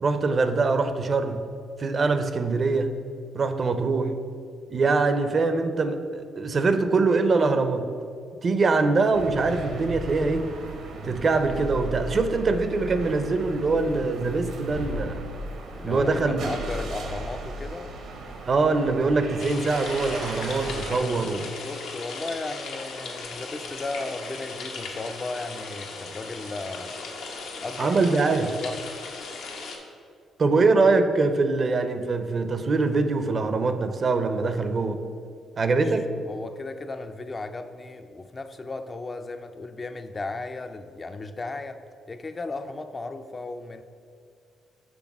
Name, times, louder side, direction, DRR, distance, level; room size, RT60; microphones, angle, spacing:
voice 1, 0.0-1.4 1.8-3.0 3.3-4.2 4.7-7.9 8.4-10.5 11.0-15.2 15.8-16.5 18.5-21.5 27.8-28.5 30.4-35.0 35.6-36.1, right 3 dB, 40° right, 9 dB, 0.5 m, -23 dB
sound 1, 9.1-21.0, right 1 dB, 75° right, 0.8 m, -36 dB
voice 2, 15.7-17.9 21.0-27.0 27.6-27.9 28.4-29.1 35.8-35.9 36.3-41.8 42.1-43.8, left 3 dB, 30° left, 8 dB, 0.3 m, -35 dB
sound 2, 19.4-29.8, left 3 dB, 85° left, 0.9 m, -37 dB
6.1 x 3.4 x 5.9 m, 2.3 s
cardioid pair, 90°, 0 cm